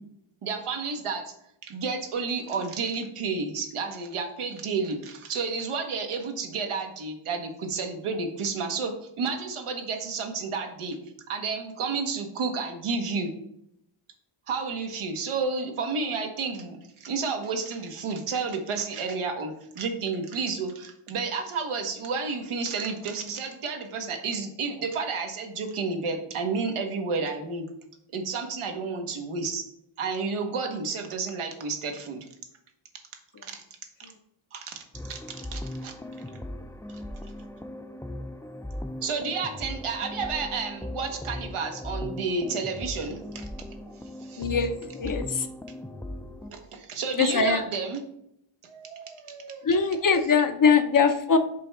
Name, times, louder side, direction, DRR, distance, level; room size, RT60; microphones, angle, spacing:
voice 1, 0.4-1.3 1.6-11.0 11.3-13.3 14.5-27.7 28.1-29.6 30.0-32.3 33.4-33.6 34.5-35.9 39.0-43.5 44.2-44.5 46.4-48.0 48.6-49.7, right 4 dB, 85° right, 4 dB, 1.2 m, -31 dB
sound 1, 34.9-46.5, left 1 dB, 5° left, 0.4 m, -38 dB
voice 2, 44.4-45.5 47.2-47.6 49.6-51.4, left 5 dB, 40° left, 7 dB, 0.7 m, -22 dB
5.3 x 3.4 x 5.4 m, 0.74 s
wide cardioid pair, 100°, 49 cm